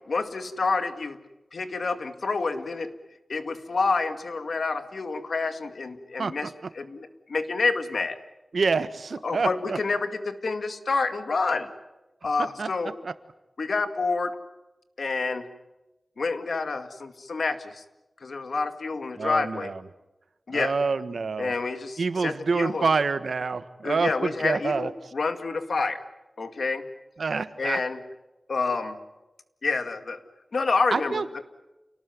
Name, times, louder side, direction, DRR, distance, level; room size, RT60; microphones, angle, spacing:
voice 1, 0.1-1.2 1.5-2.9 3.3-8.2 9.2-11.7 12.2-13.0 13.6-14.4 15.0-15.5 16.2-17.8 18.2-19.7 20.5-20.8 21.4-22.9 23.8-26.0 26.4-26.8 27.6-28.0 28.5-29.0 29.6-30.2 30.5-31.4, left 4 dB, 75° left, 9 dB, 2.1 m, -28 dB
voice 2, 8.5-9.8 12.6-12.7 13.0-13.1 19.2-19.7 20.5-21.5 22.0-24.9 27.2-27.8 30.9-31.3, right 4 dB, 80° right, 12 dB, 1.4 m, -27 dB
29.0 x 19.0 x 9.4 m, 1.0 s
wide cardioid pair, 75°, 0 cm